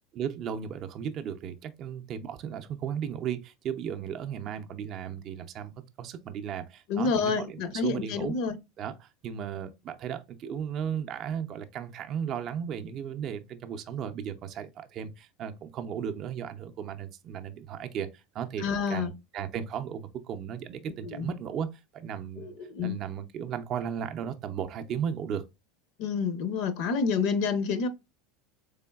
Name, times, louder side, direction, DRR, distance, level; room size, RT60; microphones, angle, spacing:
voice 1, 0.1-5.7 6.0-8.3 8.8-22.5 22.8-25.4, right 8 dB, 45° right, 0.4 m, -35 dB
voice 2, 6.9-8.6 18.6-19.1 21.0-21.3 22.4-22.9 26.0-27.9, left 5 dB, 65° left, 0.6 m, -28 dB
3.7 x 3.4 x 2.2 m
supercardioid pair, 115°, 0 cm